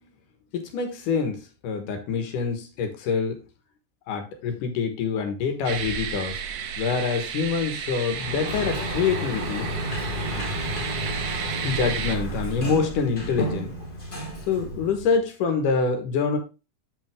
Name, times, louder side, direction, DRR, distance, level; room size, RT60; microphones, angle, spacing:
voice 1, 0.5-3.4 4.1-6.4 6.8-9.7 10.3-10.5 11.6-13.7 14.5-16.4, left 5 dB, 85° left, 6 dB, 3.0 m, -26 dB
sound 1, 5.7-12.2, right 8 dB, 90° right, 2.6 m, -33 dB
Sliding door, 8.1-15.2, right 1 dB, 20° left, 1.5 m, -31 dB
8.4 x 6.0 x 3.5 m, 0.28 s
omnidirectional pair, 3.6 m